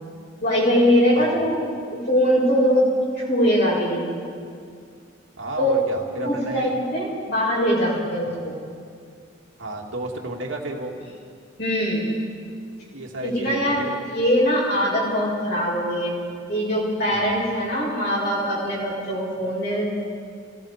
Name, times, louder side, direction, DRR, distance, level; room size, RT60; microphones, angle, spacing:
voice 1, 0.4-1.6 1.9-2.9 3.2-4.1 5.6-5.8 6.2-8.5 11.6-12.0 13.2-16.1 16.5-19.9, equal, 60° left, -6 dB, 6.8 m, -22 dB
voice 2, 5.4-6.7 8.2-8.4 9.6-10.9 12.9-14.0 17.1-17.4, right 2 dB, 80° right, -1 dB, 2.5 m, -32 dB
28.5 x 18.0 x 5.1 m, 2.2 s
head